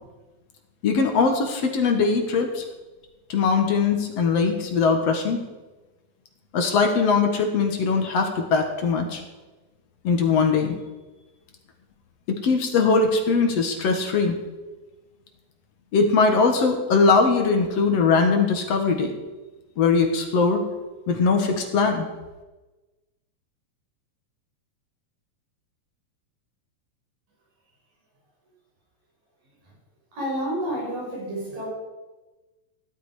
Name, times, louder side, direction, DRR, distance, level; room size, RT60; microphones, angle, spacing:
voice 1, 0.8-2.6 3.3-5.4 6.5-9.2 10.0-10.8 12.4-14.4 15.9-19.1 19.8-20.6 21.1-22.1, left 4 dB, 55° left, 4 dB, 2.3 m, -21 dB
voice 2, 30.1-31.7, equal, 75° right, -4 dB, 7.8 m, -29 dB
16.5 x 12.0 x 5.0 m, 1.2 s
omnidirectional pair, 4.0 m